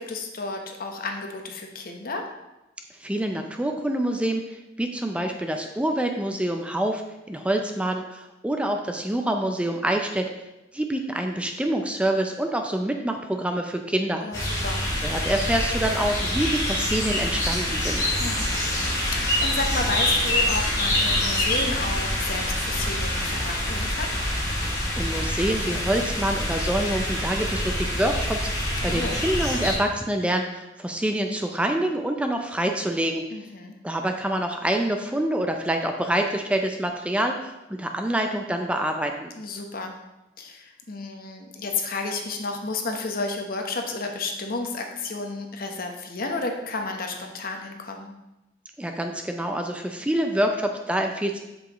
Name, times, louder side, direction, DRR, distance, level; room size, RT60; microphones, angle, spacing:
voice 1, 0.0-2.3 14.2-14.9 18.2-18.6 18.9-24.1 28.9-29.2 33.3-33.7 39.4-40.0 40.4-48.1, left 3 dB, 55° left, 3 dB, 1.0 m, -32 dB
voice 2, 3.0-10.3 10.7-14.6 15.0-18.0 25.0-33.2 33.8-39.3 48.8-51.4, right 1 dB, 5° right, 4 dB, 0.5 m, -26 dB
sound 1, 14.3-29.8, left 1 dB, 20° left, 2.9 m, -26 dB
7.9 x 7.0 x 3.0 m, 0.97 s
head